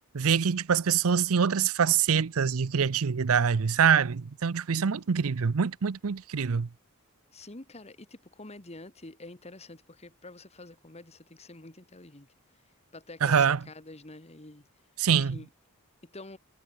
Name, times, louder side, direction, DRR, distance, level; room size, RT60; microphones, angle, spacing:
voice 1, 0.1-6.7 13.2-13.6 15.0-15.4, right 6 dB, 70° right, 0.6 m, -25 dB
voice 2, 7.3-12.3 12.9-14.7 15.1-15.5 16.0-16.4, left 2 dB, 30° left, 1.9 m, -47 dB
head